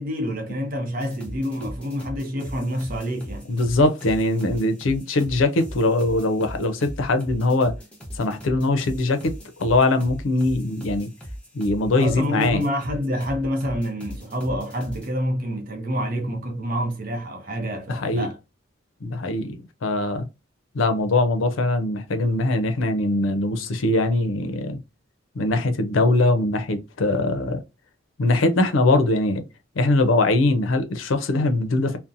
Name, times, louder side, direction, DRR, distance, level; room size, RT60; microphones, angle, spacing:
voice 1, 0.0-3.5 12.0-18.4, equal, 45° right, 0.7 m, -27 dB
sound 1, 1.0-15.1, equal, 5° left, 0.7 m, -38 dB
voice 2, 3.5-7.7 8.1-11.1 11.5-12.6 17.9-18.3 19.0-20.2 20.7-24.8 25.4-27.6 28.2-29.4 29.8-32.0, left 2 dB, 80° left, 0.5 m, -22 dB
2.7 x 2.1 x 2.5 m
head